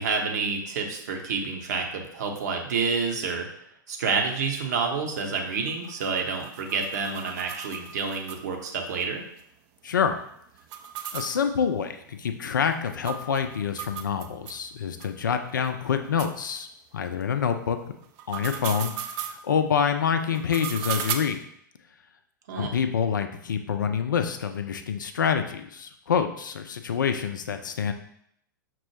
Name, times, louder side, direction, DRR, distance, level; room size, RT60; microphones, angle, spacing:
voice 1, 0.0-3.5 3.9-9.2 22.5-22.7, right 5 dB, 55° right, 2 dB, 0.7 m, -28 dB
sound 1, 5.5-8.7 9.0-9.1 9.4-9.5 10.6-14.6 15.0-15.1 15.7-15.8 16.2-16.3 18.0-19.4 20.3-21.1, right 9 dB, 35° right, 0.3 m, -36 dB
voice 2, 9.8-10.2 11.1-16.7 16.9-17.8 18.3-18.9 19.3-21.4 22.6-27.9, left 7 dB, 65° left, 7 dB, 0.4 m, -26 dB
5.8 x 2.0 x 3.1 m, 0.71 s
figure-of-eight pair, 100°, 11 cm